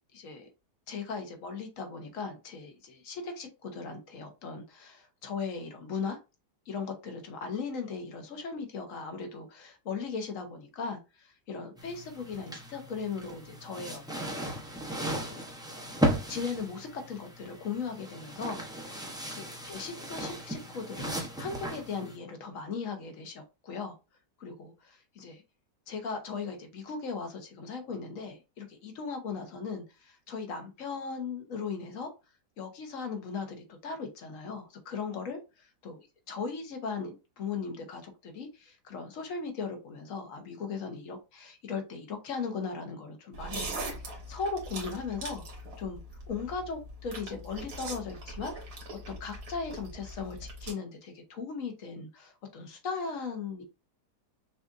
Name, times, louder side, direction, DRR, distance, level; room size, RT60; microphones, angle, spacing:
voice 1, 0.1-0.5 0.9-6.2 6.7-14.6 15.3-15.5 16.3-19.0 19.3-21.1 21.4-24.0 24.4-25.4 25.9-32.1 32.6-35.4 35.8-43.8 44.3-45.4 45.8-46.0 46.3-48.5 49.1-53.6, left 5 dB, 60° left, 5 dB, 1.3 m, -38 dB
sound 1, 11.8-22.2, right 1 dB, 5° right, 0.4 m, -36 dB
sound 2, 43.3-50.7, right 2 dB, 70° right, 1.9 m, -41 dB
6.2 x 2.5 x 2.5 m, 0.28 s
omnidirectional pair, 1.7 m